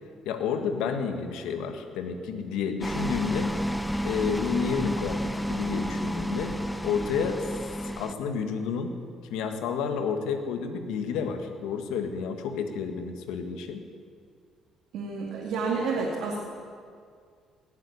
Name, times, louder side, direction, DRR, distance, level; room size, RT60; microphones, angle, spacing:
voice 1, 0.2-3.5 4.0-7.4 7.8-9.0 9.3-13.8, left 6 dB, 90° left, 7 dB, 1.5 m, -30 dB
sound 1, 2.8-8.1, equal, 5° left, 0.6 m, -31 dB
voice 2, 14.9-16.4, right 4 dB, 80° right, -4 dB, 2.5 m, -29 dB
18.0 x 7.6 x 9.6 m, 2.1 s
cardioid pair, 95°, 0 cm